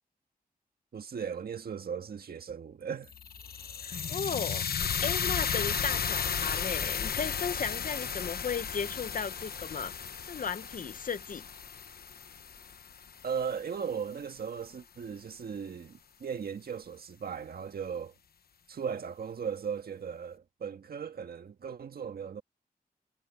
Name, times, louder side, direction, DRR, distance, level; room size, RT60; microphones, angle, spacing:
voice 1, 0.9-3.1 13.2-18.1 18.7-22.4, right 7 dB, 90° right, 1.6 m, -37 dB
sound 1, 3.1-13.2, left 7 dB, 85° left, 1.0 m, -34 dB
voice 2, 3.8-9.9 10.3-11.5, left 6 dB, 60° left, 0.9 m, -35 dB
wide cardioid pair, 115°, 15 cm